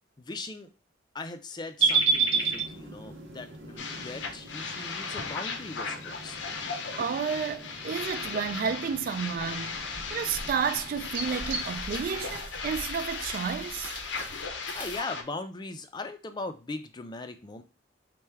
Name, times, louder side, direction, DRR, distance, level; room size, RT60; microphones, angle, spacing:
voice 1, 0.2-0.7 1.1-6.4 14.5-17.6, left 3 dB, 25° left, 0.4 m, -39 dB
sound 1, 1.8-11.7, right 4 dB, 85° right, 0.7 m, -33 dB
sound 2, 3.8-15.2, left 5 dB, 85° left, 0.6 m, -37 dB
voice 2, 7.0-13.9, right 6 dB, 50° right, 0.3 m, -31 dB
sound 3, 8.2-15.0, right 1 dB, 10° right, 0.8 m, -46 dB
4.4 x 2.2 x 3.4 m
head